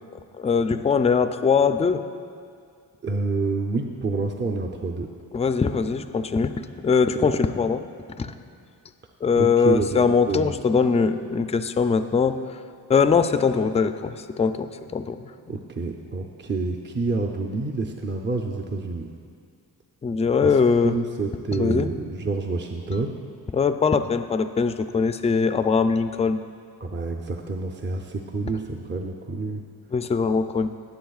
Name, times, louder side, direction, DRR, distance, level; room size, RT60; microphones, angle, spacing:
voice 1, 0.4-2.0 5.3-7.9 8.2-8.4 9.2-12.4 12.9-15.3 20.0-20.9 21.5-21.9 23.5-26.4 29.9-30.7, left 5 dB, 20° left, 9 dB, 0.3 m, -21 dB
voice 2, 3.0-5.1 9.3-10.6 15.5-19.1 20.4-23.1 26.8-29.6, right 3 dB, 30° right, 2 dB, 0.6 m, -28 dB
19.5 x 7.6 x 2.4 m, 2.2 s
cardioid pair, 85°, 38 cm